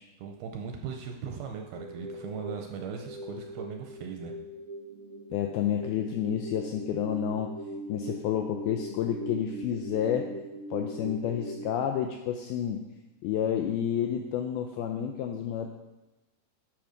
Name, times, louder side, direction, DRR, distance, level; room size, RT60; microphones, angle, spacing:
voice 1, 0.2-4.3, right 6 dB, 80° right, 3 dB, 2.3 m, -38 dB
sound 1, 1.7-11.7, right 1 dB, 60° right, 1.4 m, -40 dB
voice 2, 5.3-7.6 7.9-10.3 10.7-12.8 13.2-15.7, left 9 dB, 90° left, 4 dB, 2.2 m, -30 dB
10.0 x 6.3 x 5.0 m, 1.1 s
omnidirectional pair, 5.0 m